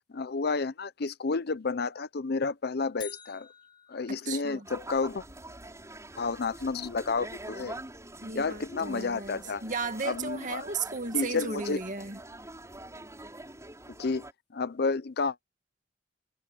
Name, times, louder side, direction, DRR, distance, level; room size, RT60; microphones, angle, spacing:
voice 1, 0.1-3.5 3.9-5.2 6.2-7.8 8.3-9.6 10.0-10.6 11.1-11.8 14.0-14.3 14.5-15.4, left 4 dB, 60° left, 0.6 m, -31 dB
sound 1, 3.0-5.1, left 9 dB, 25° left, 1.5 m, -48 dB
voice 2, 4.1-4.7 8.2-12.2, right 4 dB, 45° right, 2.2 m, -35 dB
sound 2, 4.6-14.3, right 2 dB, 15° right, 6.3 m, -45 dB
head